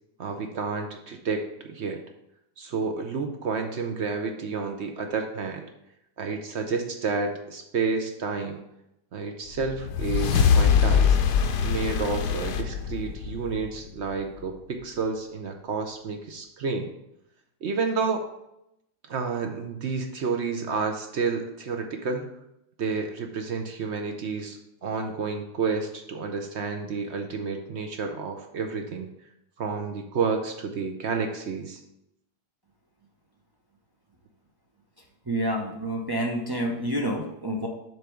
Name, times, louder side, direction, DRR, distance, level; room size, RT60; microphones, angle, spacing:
voice 1, 0.2-2.0 2.6-5.7 6.2-8.6 9.1-11.2 11.6-16.9 17.6-18.2 19.1-22.3 22.8-29.1 29.6-31.8, right 4 dB, 60° right, 4 dB, 0.7 m, -30 dB
sound 1, 9.6-14.1, left 7 dB, 75° left, 1.2 m, -23 dB
voice 2, 35.3-37.7, right 1 dB, 40° right, -1 dB, 0.3 m, -28 dB
7.5 x 3.4 x 6.2 m, 0.83 s
omnidirectional pair, 1.8 m